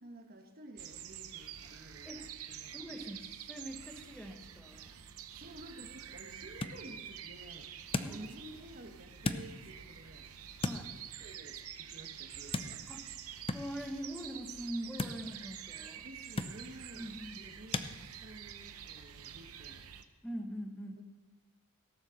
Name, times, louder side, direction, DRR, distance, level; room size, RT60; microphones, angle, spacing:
voice 1, 0.0-3.0 5.3-7.7 8.0-10.3 10.8-12.9 16.0-19.9 21.0-21.1, right 1 dB, 45° right, 5 dB, 1.3 m, -52 dB
sound 1, 0.8-20.0, right 9 dB, 75° right, 0.7 m, -48 dB
voice 2, 2.7-4.9 8.0-8.3 10.6-10.9 12.9-13.0 13.5-16.1 17.0-17.4 20.2-21.0, equal, 5° left, 4 dB, 1.2 m, -43 dB
sound 2, 5.5-17.9, left 3 dB, 25° left, 0.5 m, -42 dB
17.0 x 7.3 x 6.5 m, 1.2 s
head